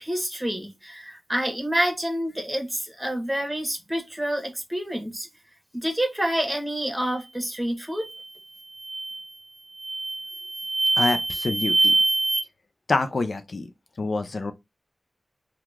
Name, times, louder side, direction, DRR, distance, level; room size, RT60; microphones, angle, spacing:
voice 1, 0.0-5.3 5.7-8.1, equal, 10° right, 1.2 m, -28 dB
sound 1, 8.0-8.3 8.8-9.3 9.8-12.4, right 2 dB, 30° right, 0.8 m, -25 dB
voice 2, 11.0-11.9 12.9-13.7 14.0-14.5, left 3 dB, 60° left, 0.4 m, -26 dB
2.9 x 2.3 x 3.4 m
wide cardioid pair, 60°, 0 cm